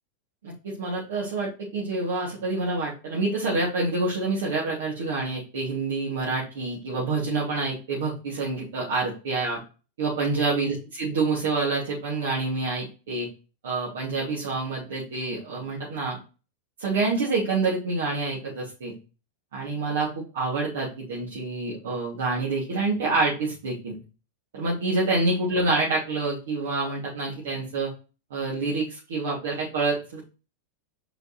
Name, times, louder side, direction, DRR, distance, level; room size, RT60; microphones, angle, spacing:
voice 1, 0.4-9.6 10.0-13.3 13.6-16.2 16.8-18.9 19.5-24.0 24.5-27.9 28.3-30.3, right 3 dB, 85° right, -6 dB, 2.8 m, -27 dB
5.0 x 4.9 x 4.4 m, 0.32 s
supercardioid pair, 150°, 0 cm